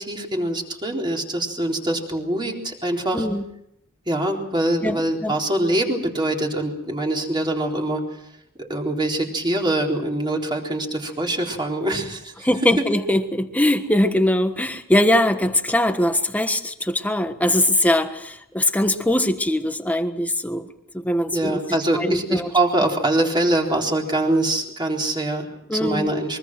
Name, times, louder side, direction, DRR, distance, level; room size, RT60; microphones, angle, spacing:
voice 1, 0.0-3.3 4.1-8.0 8.6-12.5 21.3-26.4, right 1 dB, 20° right, 0 dB, 4.0 m, -24 dB
voice 2, 3.1-3.4 4.8-5.4 12.4-20.7 20.9-21.6 21.9-22.5 25.7-26.1, left 1 dB, 5° left, 8 dB, 1.4 m, -21 dB
24.0 x 24.0 x 6.2 m, 0.78 s
head